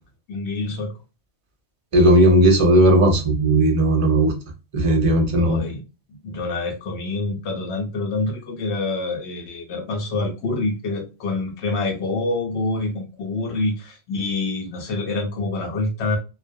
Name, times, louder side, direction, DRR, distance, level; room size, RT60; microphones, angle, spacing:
voice 1, 0.3-0.9 5.4-5.8 6.2-16.2, left 2 dB, 70° left, 1 dB, 0.8 m, -26 dB
voice 2, 1.9-4.3 4.7-5.6, right 1 dB, 45° right, 3 dB, 0.4 m, -16 dB
2.2 x 2.1 x 2.5 m, 0.29 s
omnidirectional pair, 1.3 m